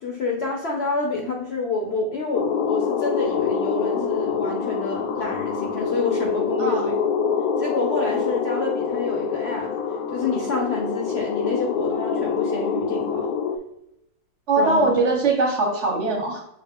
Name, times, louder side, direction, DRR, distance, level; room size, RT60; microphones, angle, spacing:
voice 1, 0.0-6.9 7.6-9.7 10.1-13.3 14.6-14.8, left 3 dB, 55° left, 0 dB, 0.8 m, -28 dB
sound 1, 2.3-13.6, left 6 dB, 75° left, 1.1 m, -25 dB
voice 2, 14.5-16.4, right 3 dB, 50° right, 0 dB, 1.0 m, -21 dB
6.1 x 2.5 x 3.5 m, 0.80 s
omnidirectional pair, 1.7 m